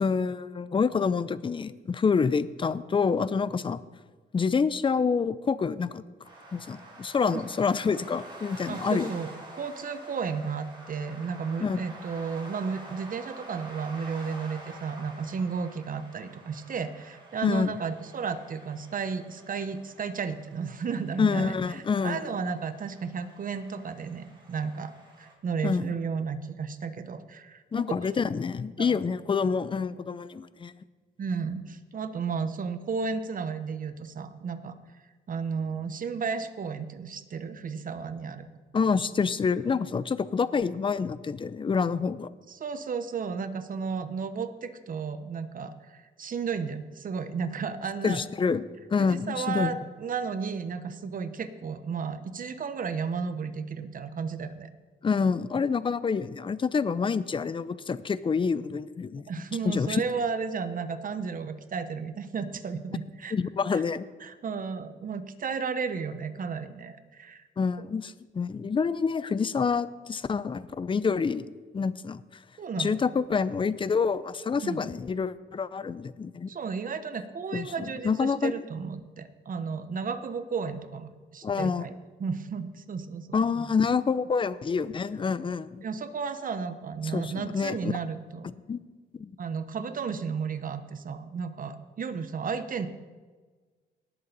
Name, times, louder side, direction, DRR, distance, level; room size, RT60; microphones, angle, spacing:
voice 1, 0.0-3.8 4.3-6.0 6.5-9.1 11.6-11.8 17.4-17.7 21.2-22.3 25.6-25.9 27.7-30.7 38.7-42.3 48.0-48.6 48.9-49.8 55.0-60.0 63.3-64.1 67.6-72.2 72.8-76.5 77.5-78.5 81.4-81.9 83.3-85.8 87.1-87.9 88.7-88.8 89.1-89.3, left 5 dB, 25° left, 16 dB, 0.5 m, -27 dB
sound 1, 6.2-25.3, right 1 dB, 25° right, 4.2 m, -48 dB
voice 2, 8.7-27.8 28.8-29.0 31.2-34.8 35.3-38.4 42.5-48.2 49.0-54.7 59.3-63.3 63.7-63.8 64.2-67.4 67.8-67.9 72.6-73.0 74.6-74.8 76.5-83.4 85.8-88.5 89.4-92.9, right 5 dB, 45° right, 11 dB, 1.0 m, -33 dB
19.0 x 6.9 x 4.1 m, 1.4 s
cardioid pair, 90°, 20 cm